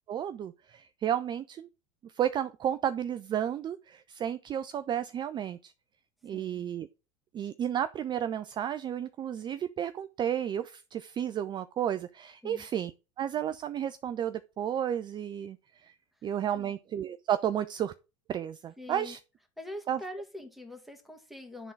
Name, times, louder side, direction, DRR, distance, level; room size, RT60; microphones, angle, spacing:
voice 1, 0.1-1.7 2.0-5.7 6.2-6.9 7.3-15.9 16.2-17.9 18.3-19.2 19.9-20.0, right 10 dB, 30° right, 0.4 m, -32 dB
voice 2, 6.3-6.6 12.4-12.6 16.5-16.7 18.8-19.2 19.6-21.7, left 1 dB, ahead, 1.9 m, -43 dB
11.0 x 3.8 x 4.6 m
hypercardioid pair, 85°, 16 cm